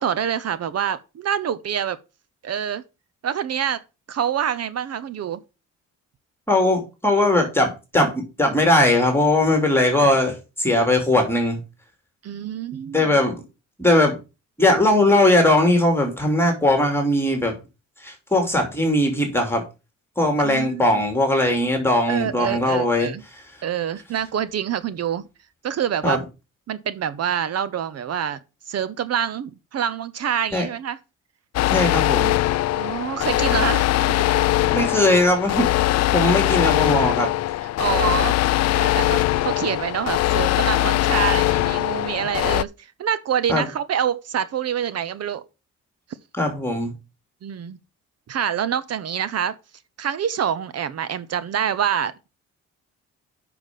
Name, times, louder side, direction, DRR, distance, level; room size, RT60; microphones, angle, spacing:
voice 1, 0.0-2.0 2.4-2.8 3.2-3.8 4.1-5.4 10.0-10.1 12.2-13.2 20.4-21.1 22.1-23.2 23.6-25.3 25.6-26.2 26.7-28.4 28.7-31.0 32.7-34.2 37.8-42.7 43.0-45.4 47.4-47.8 48.3-49.5 50.0-52.1, right 9 dB, 55° right, 0.9 m, -26 dB
voice 2, 6.5-11.6 12.9-13.4 13.8-14.2 14.6-17.6 18.0-19.6 20.2-23.1 26.0-26.2 30.5-30.7 31.7-32.4 34.7-37.3 43.5-43.7 46.4-46.9, left 1 dB, 10° left, 2.9 m, -19 dB
sound 1, 31.5-42.6, left 15 dB, 60° left, 0.4 m, -21 dB
6.6 x 6.0 x 7.4 m
cardioid pair, 90°, 30 cm